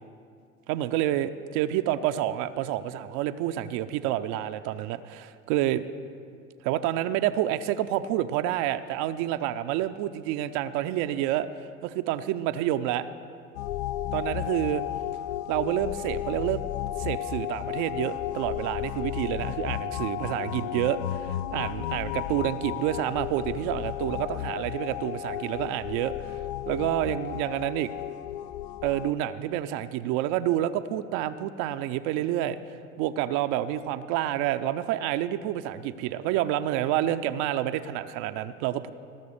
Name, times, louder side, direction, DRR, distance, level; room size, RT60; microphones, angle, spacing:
voice 1, 0.7-5.8 6.6-11.5 11.8-13.1 14.1-14.8 15.5-16.6 17.0-26.4 26.7-27.9 28.8-32.6 33.0-38.9, right 12 dB, 50° right, 11 dB, 0.6 m, -28 dB
sound 1, 13.5-29.1, left 13 dB, 55° left, 0.5 m, -33 dB
17.0 x 6.7 x 6.6 m, 2.3 s
hypercardioid pair, 80°, 38 cm